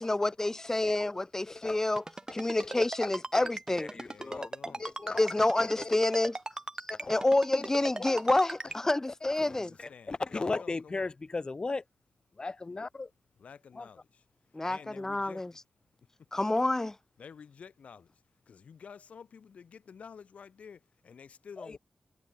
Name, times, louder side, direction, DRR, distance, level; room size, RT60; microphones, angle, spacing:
voice 1, 0.0-2.0 2.3-3.9 5.2-6.4 7.1-9.7 14.5-15.5 16.3-17.0, left 2 dB, 20° left, 0.4 m, -28 dB
voice 2, 1.5-1.8 2.3-3.1 3.4-3.5 3.8-4.5 4.8-5.2 5.5-5.9 6.9-7.2 7.5-7.7 8.0-8.2 9.0-11.8 12.4-13.1 13.8-13.9 21.6-21.8, left 3 dB, 40° left, 1.4 m, -37 dB
Ringtone, 2.0-8.8, right 2 dB, 35° right, 1.7 m, -38 dB
voice 3, 4.0-4.9 9.4-11.1 13.4-15.6 16.0-16.3 17.2-21.8, left 6 dB, 85° left, 4.7 m, -51 dB
cardioid pair, 65°, 2 cm